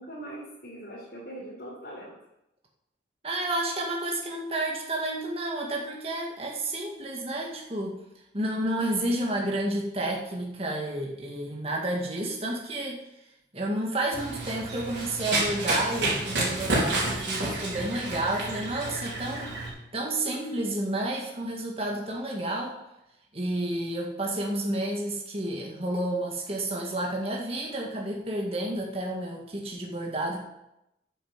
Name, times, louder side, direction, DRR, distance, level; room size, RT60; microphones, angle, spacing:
voice 1, 0.0-2.1, right 1 dB, 55° left, -8 dB, 4.1 m, -41 dB
voice 2, 3.2-8.0 8.3-13.0 13.5-19.5 19.9-22.8 23.3-30.4, right 1 dB, 30° right, -1 dB, 1.9 m, -30 dB
Run, 14.1-19.7, right 2 dB, 70° right, 4.4 m, -30 dB
9.7 x 8.4 x 7.2 m, 0.86 s
head